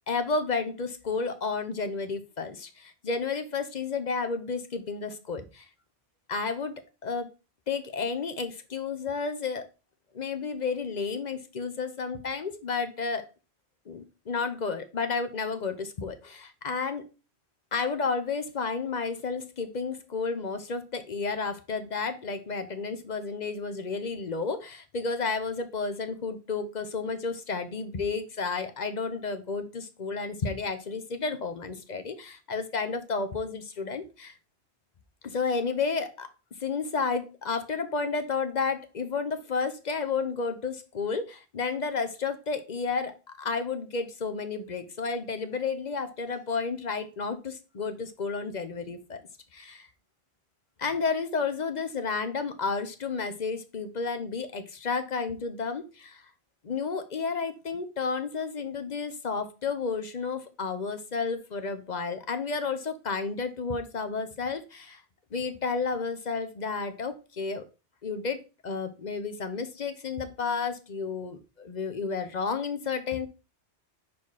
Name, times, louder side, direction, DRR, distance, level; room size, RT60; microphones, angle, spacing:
voice 1, 0.1-5.7 6.3-7.3 7.7-9.7 10.1-13.3 13.9-17.1 17.7-34.3 35.2-36.3 36.6-49.2 49.5-49.9 50.8-56.3 56.6-65.0 65.3-67.6 68.0-73.3, left 4 dB, 45° left, 10 dB, 0.8 m, -31 dB
5.5 x 4.4 x 4.8 m, 0.31 s
omnidirectional pair, 1.1 m